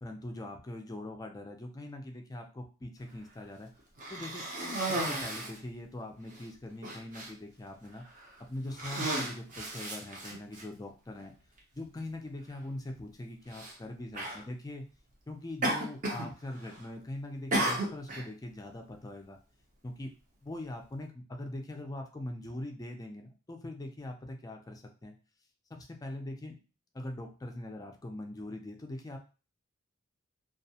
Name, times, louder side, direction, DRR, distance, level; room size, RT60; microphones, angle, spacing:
voice 1, 0.0-3.7 4.1-4.5 4.9-8.1 8.4-11.3 11.7-14.9 15.3-19.4 19.8-20.1 20.4-25.2 25.7-26.6 26.9-29.2, left 1 dB, 20° left, 3 dB, 0.3 m, -42 dB
Cough, 4.0-5.6 6.3-6.4 6.8-7.3 8.0-8.3 8.7-10.6 11.6-11.7 13.5-13.7 14.1-14.4 15.6-16.3 16.6-17.0 17.5-18.3, right 1 dB, 40° right, 0.6 m, -34 dB
2.3 x 2.1 x 2.7 m, 0.35 s
head